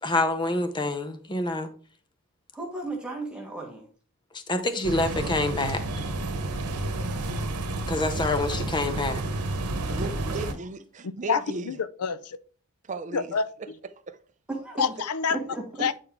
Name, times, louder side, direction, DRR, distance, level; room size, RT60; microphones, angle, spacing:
voice 1, 0.0-1.7 4.3-5.8 7.9-9.2, left 2 dB, 20° left, 0.8 m, -27 dB
voice 2, 2.5-3.9 14.5-14.9 15.3-15.6, right 2 dB, 5° right, 1.4 m, -34 dB
sound 1, 4.8-10.5, right 2 dB, 85° right, 1.0 m, -30 dB
voice 3, 9.9-11.8 12.8-13.3 14.1-14.2, right 3 dB, 35° right, 0.5 m, -35 dB
voice 4, 11.0-12.4 13.1-13.8 14.8-15.4 15.8-15.9, left 6 dB, 85° left, 0.5 m, -28 dB
8.7 x 4.5 x 3.7 m
head